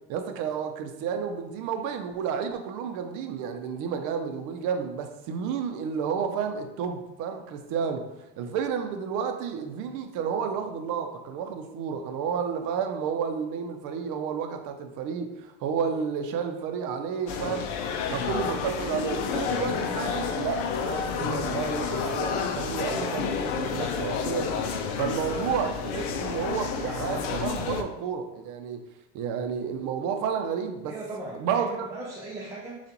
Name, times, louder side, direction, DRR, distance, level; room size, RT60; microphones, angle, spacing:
voice 1, 0.1-8.1 8.4-17.7 18.1-24.5 25.0-28.8 29.1-30.9 31.3-31.9, right 7 dB, 55° right, 6 dB, 0.7 m, -31 dB
sound 1, 17.3-27.8, left 6 dB, 65° left, 0.7 m, -30 dB
voice 2, 30.9-32.9, right 2 dB, 10° right, -3 dB, 0.6 m, -38 dB
6.7 x 2.5 x 2.9 m, 0.93 s
supercardioid pair, 120°, 37 cm